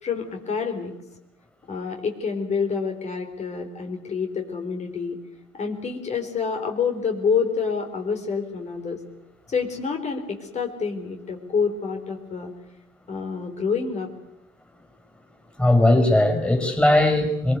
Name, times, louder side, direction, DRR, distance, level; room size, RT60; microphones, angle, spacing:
voice 1, 0.0-0.9 1.7-5.2 5.6-9.0 9.5-12.5 13.1-14.1, left 5 dB, 40° left, 4 dB, 4.2 m, -27 dB
voice 2, 15.6-17.6, left 1 dB, 5° left, 5 dB, 5.2 m, -18 dB
23.5 x 22.5 x 8.3 m, 0.85 s
cardioid pair, 110°, 17 cm